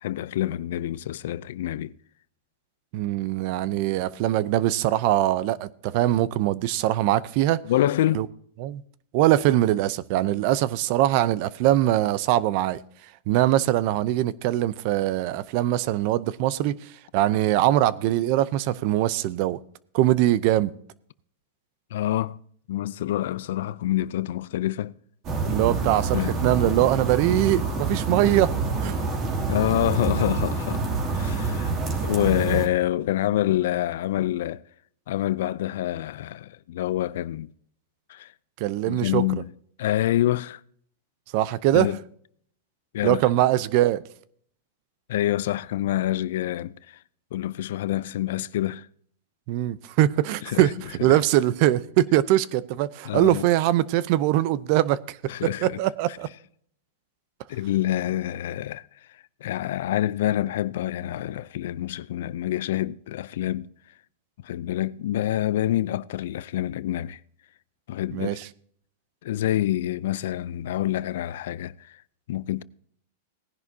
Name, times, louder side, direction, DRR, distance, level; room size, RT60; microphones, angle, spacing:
voice 1, 0.0-1.9 7.6-8.2 21.9-22.4 22.7-24.9 26.1-26.3 29.5-30.8 31.1-31.7 32.0-34.6 35.1-37.5 38.1-38.3 38.9-39.5 39.8-40.6 41.7-42.0 42.9-43.2 45.1-46.7 47.3-48.8 50.5-50.7 51.0-51.2 53.1-53.4 55.3-55.8 57.5-58.8 59.4-63.7 64.4-67.2 67.9-68.4 69.2-71.7 72.3-72.6, left 13 dB, 70° left, 0.5 m, -26 dB
voice 2, 2.9-7.6 8.1-8.3 8.6-8.8 9.1-12.8 13.3-19.6 19.9-20.7 25.5-28.5 28.8-29.0 38.6-39.2 41.3-41.9 43.0-44.0 49.5-55.2 55.4-56.3 68.1-68.5, right 14 dB, 50° right, 0.6 m, -22 dB
sound 1, 25.2-32.7, right 3 dB, 35° right, 2.7 m, -27 dB
18.5 x 10.5 x 2.8 m
supercardioid pair, 135°, 0 cm